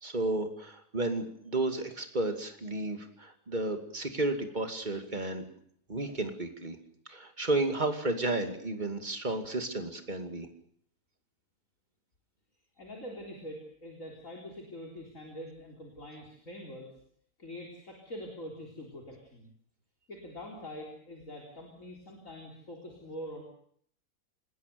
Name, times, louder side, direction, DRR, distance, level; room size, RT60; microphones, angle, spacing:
voice 1, 0.0-5.4 5.9-6.8 7.1-10.5, right 2 dB, 30° right, 7 dB, 2.6 m, -32 dB
voice 2, 12.8-16.9 17.4-19.5 20.1-23.4, equal, 55° left, 1 dB, 4.2 m, -44 dB
27.0 x 20.5 x 6.9 m, 0.63 s
omnidirectional pair, 1.6 m